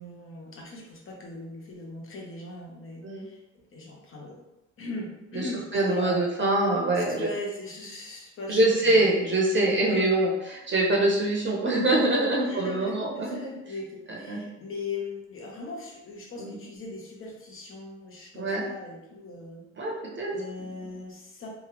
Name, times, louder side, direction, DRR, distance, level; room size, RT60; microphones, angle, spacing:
voice 1, 0.0-4.4 4.8-6.3 7.1-9.1 9.8-10.1 12.4-19.6 20.3-21.5, left 2 dB, 45° left, -1 dB, 0.9 m, -39 dB
voice 2, 5.7-7.3 8.5-13.5 14.1-14.4 16.4-16.5 18.3-18.6 19.8-20.4, right 2 dB, 40° right, -2 dB, 0.8 m, -24 dB
3.0 x 2.3 x 3.0 m, 0.91 s
cardioid pair, 90°, 30 cm